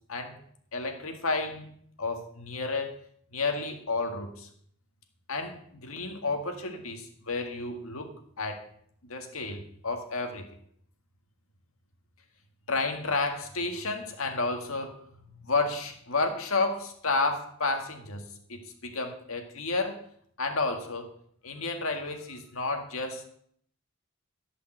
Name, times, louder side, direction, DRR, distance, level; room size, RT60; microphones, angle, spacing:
voice 1, 0.7-1.6 2.0-3.0 3.3-4.5 5.3-8.7 9.0-10.5 12.7-15.0 15.3-20.0 20.4-21.1 21.4-23.2, left 3 dB, 85° left, 4 dB, 1.9 m, -31 dB
16.0 x 5.5 x 7.9 m, 0.64 s
head